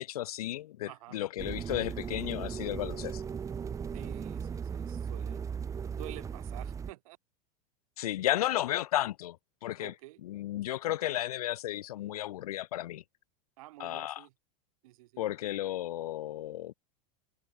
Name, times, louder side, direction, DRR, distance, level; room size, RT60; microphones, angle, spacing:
voice 1, 0.0-3.2 8.0-9.4 9.6-9.9 10.2-13.0 13.8-14.2 15.2-16.7, left 14 dB, 85° left, 2.5 m, -33 dB
voice 2, 0.8-1.2 2.8-3.1 3.9-5.4 6.0-7.2 9.8-10.2 13.6-14.3 14.8-15.2, right 18 dB, 70° right, 4.9 m, -50 dB
sound 1, 1.4-6.9, right 7 dB, 15° right, 1.0 m, -37 dB
supercardioid pair, 135°, 19 cm